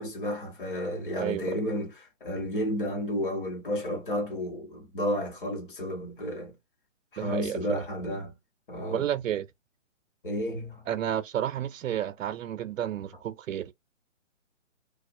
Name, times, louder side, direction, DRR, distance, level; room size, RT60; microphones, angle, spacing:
voice 1, 0.0-6.5 7.1-8.3 8.7-9.1 10.2-10.8, left 1 dB, 45° left, 0.9 m, -32 dB
voice 2, 1.2-1.6 7.2-7.8 8.9-9.5 10.9-13.7, right 10 dB, 80° right, 0.5 m, -31 dB
2.3 x 2.2 x 2.4 m
hypercardioid pair, 170°, 38 cm